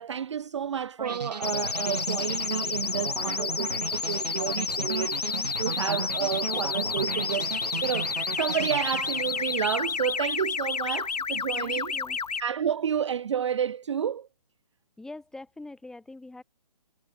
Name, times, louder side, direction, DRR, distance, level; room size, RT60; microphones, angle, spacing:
voice 1, 0.0-7.5 7.8-11.9 12.4-14.3, right 8 dB, 45° right, 0.5 m, -30 dB
sound 1, 1.0-10.0, right 4 dB, 80° right, 1.2 m, -36 dB
sound 2, 1.4-12.4, left 5 dB, 70° left, 1.3 m, -31 dB
voice 2, 11.6-12.2 15.0-16.4, left 2 dB, 5° left, 4.1 m, -44 dB
figure-of-eight pair, 150°, 21 cm